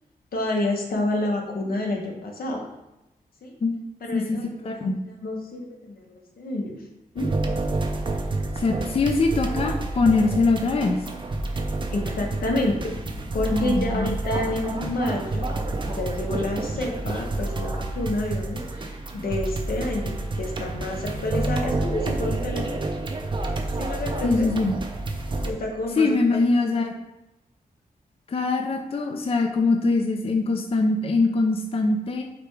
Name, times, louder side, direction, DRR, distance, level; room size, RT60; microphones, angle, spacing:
voice 1, 0.3-2.6 3.4-3.6 4.0-4.9 5.2-6.7 7.1-7.3 11.5-11.6 11.9-12.9 13.3-15.5 15.9-22.9 23.8-24.5 25.4-26.4, left 2 dB, 80° left, 1 dB, 0.9 m, -29 dB
voice 2, 4.1-5.0 8.6-11.0 13.5-14.1 24.2-24.7 26.0-26.9 28.3-32.2, left 3 dB, 40° left, 3 dB, 0.4 m, -23 dB
sound 1, 7.2-25.5, right 2 dB, 35° right, 0.5 m, -29 dB
4.9 x 2.3 x 4.6 m, 0.95 s
wide cardioid pair, 100°, 15 cm